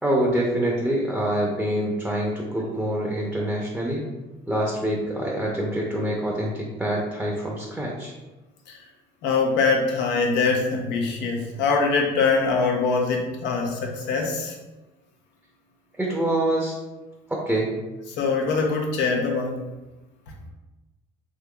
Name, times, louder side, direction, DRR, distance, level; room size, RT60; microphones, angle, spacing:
voice 1, 0.0-4.0 4.5-8.1 16.0-16.8 17.3-17.7, right 1 dB, 5° right, -2 dB, 0.6 m, -25 dB
voice 2, 9.2-14.5 18.2-19.6, left 4 dB, 80° left, 0 dB, 0.7 m, -23 dB
3.6 x 2.9 x 2.3 m, 1.1 s
supercardioid pair, 80°, 18 cm